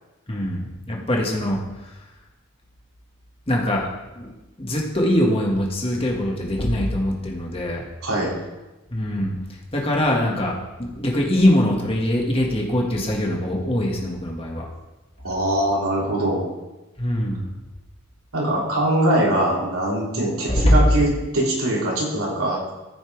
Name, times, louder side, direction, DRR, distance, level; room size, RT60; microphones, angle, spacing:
voice 1, 0.3-1.6 3.5-3.9 4.2-7.8 8.9-14.7 17.0-17.5 20.5-20.8, left 1 dB, 25° left, -1 dB, 1.6 m, -22 dB
voice 2, 8.0-8.3 15.2-16.4 18.3-22.6, right 1 dB, 85° right, -4 dB, 3.1 m, -22 dB
14.0 x 5.8 x 4.7 m, 1.1 s
head